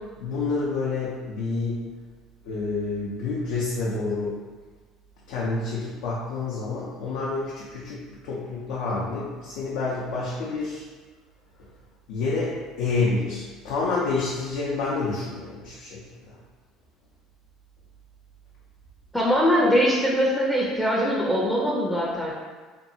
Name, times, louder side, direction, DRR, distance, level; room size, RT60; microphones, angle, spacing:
voice 1, 0.2-1.9 2.4-4.4 5.3-10.8 12.1-16.4, left 3 dB, 80° left, -6 dB, 0.5 m, -28 dB
voice 2, 19.1-22.3, equal, 5° left, -4 dB, 0.5 m, -22 dB
2.6 x 2.3 x 2.6 m, 1.4 s
supercardioid pair, 90°, 0 cm